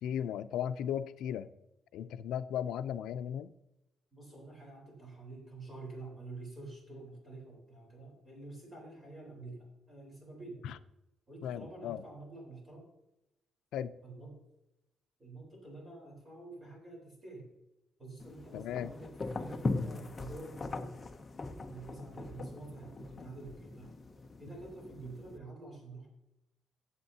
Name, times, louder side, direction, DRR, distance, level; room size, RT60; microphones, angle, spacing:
voice 1, 0.0-1.5 1.9-3.5 10.6-10.8 11.4-12.0 13.7-13.9 18.5-18.9, left 9 dB, 85° left, 13 dB, 0.5 m, -36 dB
voice 2, 4.1-10.6 11.3-12.9 14.0-14.4 15.2-17.5 18.0-20.9 21.7-23.9 24.4-26.1, right 2 dB, 15° right, -1 dB, 4.0 m, -48 dB
sound 1, 18.2-25.4, left 3 dB, 20° left, 0.7 m, -40 dB
15.5 x 8.1 x 2.8 m, 0.90 s
cardioid pair, 170°, 0 cm